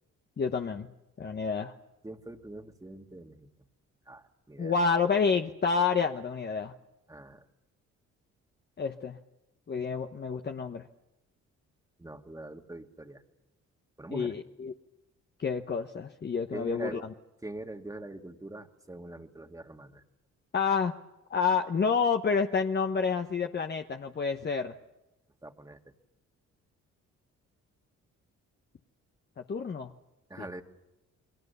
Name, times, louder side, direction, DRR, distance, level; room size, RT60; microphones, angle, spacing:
voice 1, 0.4-0.9 1.2-1.7 4.6-6.7 8.8-9.2 9.7-10.9 14.1-14.7 15.4-17.0 20.5-20.9 21.3-24.7 29.5-29.9 30.4-30.5, left 5 dB, 35° left, 5 dB, 1.1 m, -29 dB
voice 2, 2.0-3.5 4.1-4.8 7.1-7.4 12.0-13.2 14.0-14.3 16.5-17.1 17.4-20.0 25.4-25.8 30.3-30.6, right 2 dB, 10° right, 5 dB, 2.0 m, -43 dB
29.0 x 22.0 x 6.9 m, 0.95 s
cardioid pair, 90°, 30 cm